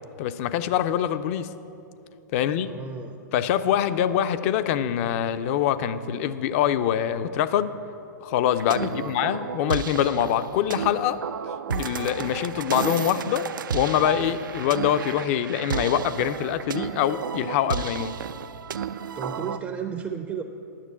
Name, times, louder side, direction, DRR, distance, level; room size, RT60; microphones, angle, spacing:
voice 1, 0.2-1.5 2.3-2.7 3.3-7.7 8.2-11.2 11.7-13.5 13.7-18.2, left 10 dB, 45° left, 12 dB, 0.5 m, -24 dB
voice 2, 2.4-3.2 4.1-4.3 8.8-9.2 19.1-20.4, right 7 dB, 20° right, 6 dB, 0.5 m, -34 dB
sound 1, 8.5-19.6, right 7 dB, 85° right, 0.4 m, -32 dB
10.0 x 6.7 x 7.2 m, 2.8 s
hypercardioid pair, 125°, 11 cm